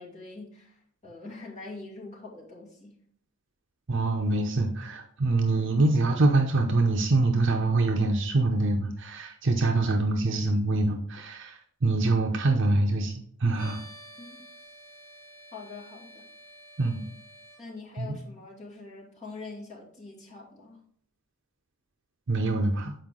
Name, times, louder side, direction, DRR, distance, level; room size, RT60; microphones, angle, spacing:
voice 1, 0.0-2.9 14.2-14.4 15.5-16.3 17.6-20.8, left 3 dB, 35° left, -5 dB, 2.4 m, -44 dB
voice 2, 3.9-13.8 16.8-17.0 18.0-18.2 22.3-22.9, right 2 dB, 60° right, 3 dB, 0.7 m, -25 dB
sound 1, 13.5-17.6, equal, 5° left, 2.8 m, -50 dB
7.7 x 4.8 x 3.7 m, 0.62 s
head